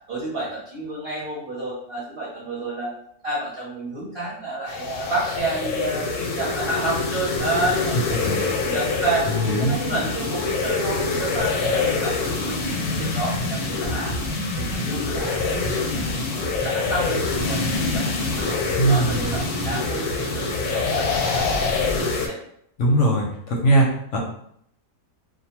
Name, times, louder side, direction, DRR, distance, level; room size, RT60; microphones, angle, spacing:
voice 1, 0.1-2.9 3.2-9.3 9.6-14.1 14.6-18.6 18.9-20.4 20.7-21.5 21.8-22.4, right 2 dB, 50° right, -8 dB, 1.0 m, -30 dB
sound 1, 4.7-22.3, left 4 dB, 90° left, 1.1 m, -26 dB
sound 2, 7.6-22.0, right 1 dB, 10° left, 0.6 m, -35 dB
voice 2, 9.3-9.8 18.8-19.3 22.8-24.2, right 1 dB, 65° left, -1 dB, 0.8 m, -20 dB
2.6 x 2.4 x 2.9 m, 0.69 s
omnidirectional pair, 1.6 m